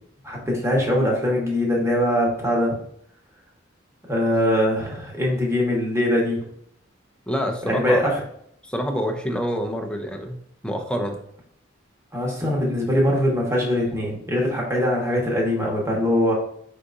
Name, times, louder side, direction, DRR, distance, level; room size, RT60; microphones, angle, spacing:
voice 1, 0.2-2.8 4.1-6.5 7.6-8.2 12.1-16.3, left 1 dB, 15° right, -2 dB, 1.2 m, -22 dB
voice 2, 7.3-8.0 8.6-10.4 10.6-11.2, equal, 5° left, 3 dB, 0.6 m, -27 dB
4.9 x 3.7 x 2.6 m, 0.68 s
head